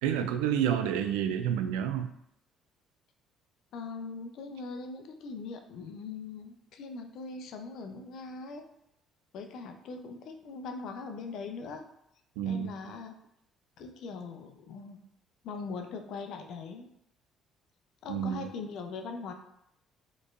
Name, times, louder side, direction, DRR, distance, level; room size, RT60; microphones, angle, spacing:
voice 1, 0.0-2.1 12.4-12.7 18.1-18.5, right 9 dB, 85° right, 8 dB, 0.3 m, -29 dB
voice 2, 3.7-8.6 9.3-11.9 12.4-13.1 13.8-15.0 15.4-16.9 18.0-19.3, left 4 dB, 65° left, 5 dB, 0.5 m, -41 dB
4.2 x 3.1 x 2.5 m, 0.76 s
hypercardioid pair, 60°, 0 cm